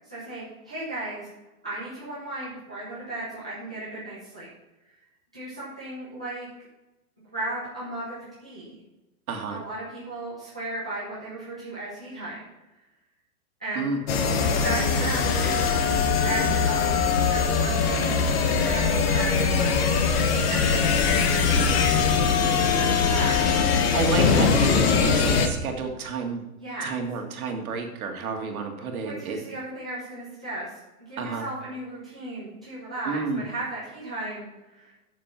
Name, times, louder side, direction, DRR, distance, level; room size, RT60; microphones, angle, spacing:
voice 1, 0.1-1.3 1.6-4.5 5.3-6.5 7.3-8.8 9.5-12.4 13.6-14.0 14.6-20.1 20.5-21.5 22.1-24.1 26.6-26.9 28.9-30.7 31.0-34.9, right 2 dB, 5° right, -11 dB, 0.4 m, -35 dB
voice 2, 9.3-9.6 13.8-14.0 23.9-26.4 26.8-29.4 31.2-31.4 33.0-33.5, right 4 dB, 70° right, 3 dB, 2.0 m, -30 dB
sound 1, 14.1-25.5, left 5 dB, 40° left, 1.2 m, -22 dB
9.1 x 6.7 x 5.8 m, 1.0 s
supercardioid pair, 175°, 45 cm